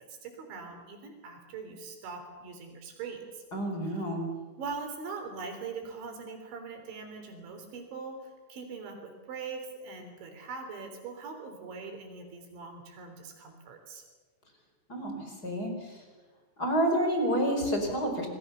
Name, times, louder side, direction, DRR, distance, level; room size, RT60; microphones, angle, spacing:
voice 1, 0.1-3.4 3.8-4.1 4.6-14.0, right 4 dB, 75° right, 5 dB, 6.0 m, -42 dB
voice 2, 3.5-4.3 14.9-15.7 16.6-18.3, equal, 20° left, 3 dB, 4.4 m, -29 dB
27.0 x 21.0 x 7.0 m, 1.4 s
omnidirectional pair, 5.4 m